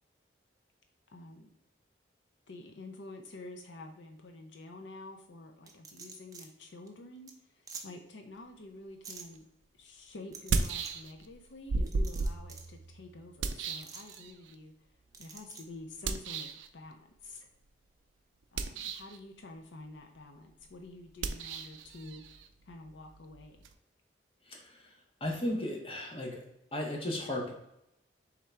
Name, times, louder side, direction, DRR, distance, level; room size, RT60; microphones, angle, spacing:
voice 1, 1.1-1.5 2.5-9.4 9.7-14.9 15.2-17.5 18.5-22.2 22.6-23.6, left 2 dB, 75° left, 3 dB, 0.5 m, -49 dB
sound 1, 5.7-6.5 6.9-7.0 7.3-7.4 7.7-7.8 9.0-9.2 10.3-10.9 11.9-12.7 13.8-14.2 15.1-15.6, right 5 dB, 20° right, 0.4 m, -47 dB
sound 2, 9.3-9.4 10.3-11.4 11.7-14.5 16.0-16.7 18.4-19.2 21.2-23.7, right 3 dB, 80° right, 0.4 m, -35 dB
voice 2, 24.5-24.9 25.2-26.4 26.7-27.5, left 1 dB, 30° left, 0 dB, 0.9 m, -35 dB
3.6 x 3.3 x 4.3 m, 0.80 s
head